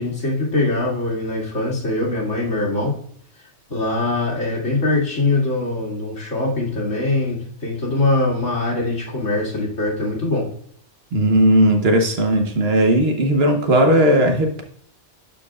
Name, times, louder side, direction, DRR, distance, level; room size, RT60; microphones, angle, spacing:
voice 1, 0.0-2.9 3.7-10.5, left 2 dB, 85° left, -5 dB, 2.7 m, -22 dB
voice 2, 11.1-14.6, right 1 dB, 60° right, 4 dB, 1.2 m, -16 dB
11.5 x 4.6 x 2.4 m, 0.62 s
omnidirectional pair, 1.2 m